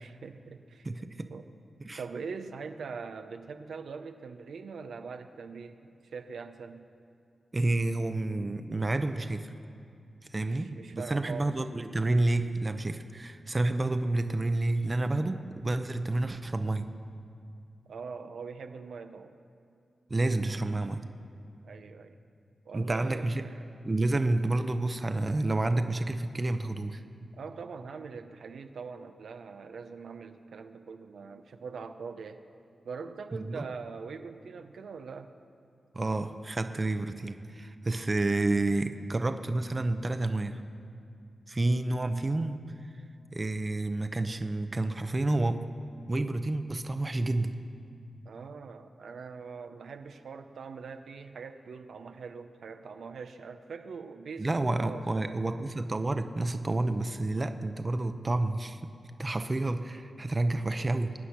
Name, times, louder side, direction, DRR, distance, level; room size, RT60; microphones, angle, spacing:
voice 1, 0.0-0.9 1.3-1.5 2.0-6.9 10.4-11.5 17.9-19.3 21.6-22.2 22.6-23.7 27.3-32.4 32.8-35.3 48.2-55.4, right 5 dB, 85° right, 7 dB, 0.7 m, -42 dB
voice 2, 0.8-1.3 1.8-2.0 7.5-9.5 10.3-16.9 20.1-21.0 22.7-23.4 23.8-27.0 33.3-33.6 35.9-40.6 41.5-42.6 43.3-45.6 46.1-47.5 54.4-58.8 59.2-61.1, right 2 dB, 25° right, 9 dB, 0.7 m, -29 dB
22.5 x 9.8 x 5.9 m, 2.4 s
wide cardioid pair, 120°, 0 cm